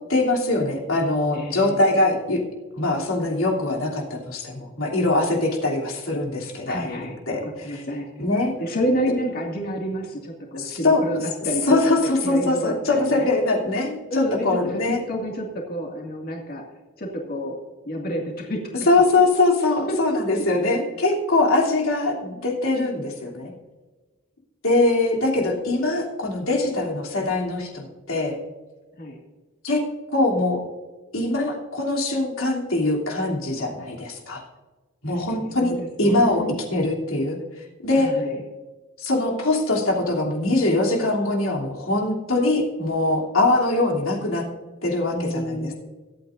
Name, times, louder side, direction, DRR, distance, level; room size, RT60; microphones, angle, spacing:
voice 1, 0.1-2.4 2.8-7.0 7.3-7.8 8.2-8.5 10.5-11.0 11.7-15.0 18.9-23.5 24.6-28.4 29.6-29.8 30.1-30.6 31.1-34.4 35.0-36.4 36.7-38.1 39.0-44.4 44.8-45.7, left 2 dB, 90° left, -2 dB, 3.1 m, -22 dB
voice 2, 1.3-1.8 6.7-8.2 8.6-11.8 12.2-13.3 14.1-16.6 17.0-17.6 17.8-18.6 19.9-20.2 29.0-29.2 35.1-36.6 37.9-38.4 45.1-45.7, equal, 45° left, -1 dB, 2.1 m, -29 dB
24.0 x 8.8 x 2.6 m, 1.2 s
head